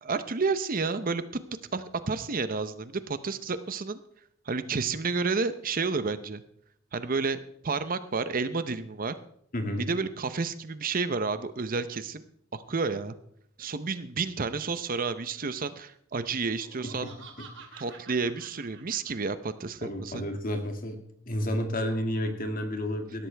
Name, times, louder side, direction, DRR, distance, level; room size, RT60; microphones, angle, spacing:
voice 1, 0.0-1.2 1.7-4.0 4.5-6.4 6.9-9.1 9.8-12.2 12.5-13.2 13.6-17.1 17.8-20.3, right 4 dB, 45° right, 12 dB, 0.7 m, -30 dB
voice 2, 9.5-9.9 16.8-17.1 19.8-21.0 21.3-23.3, left 1 dB, 40° left, 5 dB, 2.1 m, -31 dB
Laughter, 16.4-19.7, right 4 dB, 60° right, 2.6 m, -49 dB
17.5 x 13.0 x 3.4 m, 0.68 s
head